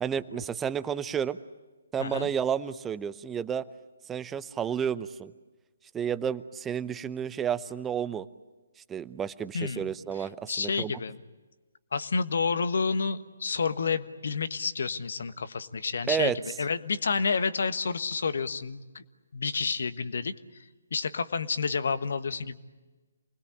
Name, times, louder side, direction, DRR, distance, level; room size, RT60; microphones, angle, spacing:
voice 1, 0.0-1.4 1.9-3.6 4.1-5.3 5.9-8.3 8.9-10.9 16.1-16.4, right 8 dB, 10° right, 14 dB, 0.7 m, -31 dB
voice 2, 9.5-9.9 10.5-11.2 11.9-19.0 19.3-20.3 20.9-22.6, left 5 dB, 65° left, 12 dB, 1.4 m, -29 dB
28.5 x 20.5 x 8.7 m, 1.2 s
figure-of-eight pair, 140°, 0 cm